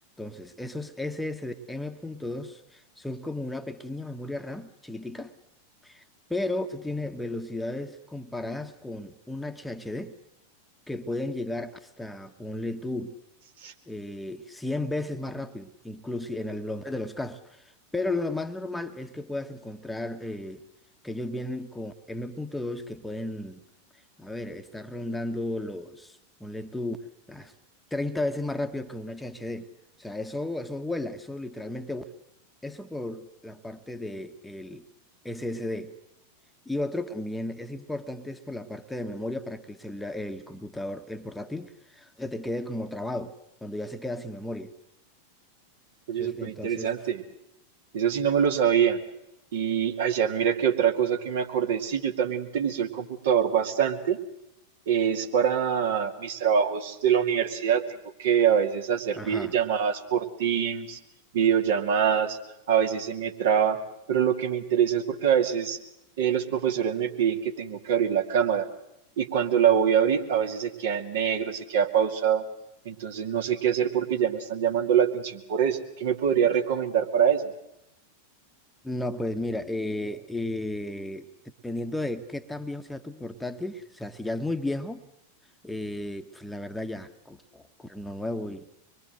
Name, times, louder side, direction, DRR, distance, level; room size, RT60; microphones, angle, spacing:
voice 1, 0.2-5.3 5.8-6.0 6.3-10.1 10.9-13.2 13.9-20.6 21.0-23.6 24.2-27.0 27.3-27.5 27.9-29.7 30.0-32.0 32.6-34.9 35.2-35.9 36.6-43.3 43.6-44.7 46.1-47.0 59.1-59.5 78.8-81.3 81.6-85.0 85.6-88.7, left 1 dB, 5° left, 1.3 m, -34 dB
voice 2, 46.1-47.2 47.9-49.0 49.5-54.2 54.9-57.8 58.2-61.0 61.3-62.4 62.7-63.8 64.1-65.8 66.2-68.7 69.2-72.4 72.8-77.5, right 8 dB, 55° right, 2.4 m, -24 dB
25.0 x 22.5 x 7.8 m
figure-of-eight pair, 90°, 0 cm